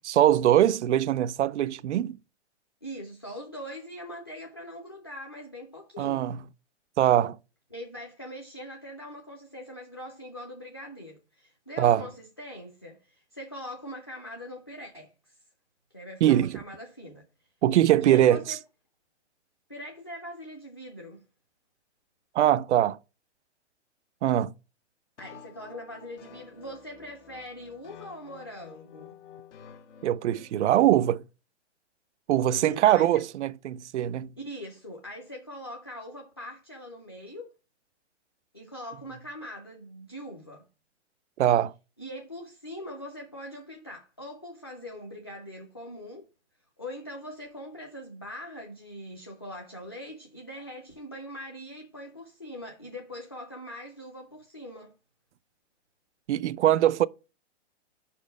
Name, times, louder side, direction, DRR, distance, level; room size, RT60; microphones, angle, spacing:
voice 1, 0.0-2.2 6.0-6.4 7.0-7.4 11.8-12.1 16.2-16.6 17.6-18.4 22.4-23.0 24.2-24.5 30.0-31.2 32.3-34.3 41.4-41.7 56.3-57.1, right 12 dB, 75° right, 0.5 m, -22 dB
voice 2, 2.8-6.3 7.7-15.3 15.9-17.2 18.0-18.6 19.7-21.2 25.2-29.2 32.6-33.2 34.4-37.5 38.5-40.7 42.0-46.3 46.8-54.9, equal, 25° left, 0.4 m, -42 dB
sound 1, 25.2-30.5, left 8 dB, 75° left, 1.1 m, -50 dB
5.4 x 4.3 x 5.1 m
hypercardioid pair, 175°, 35 cm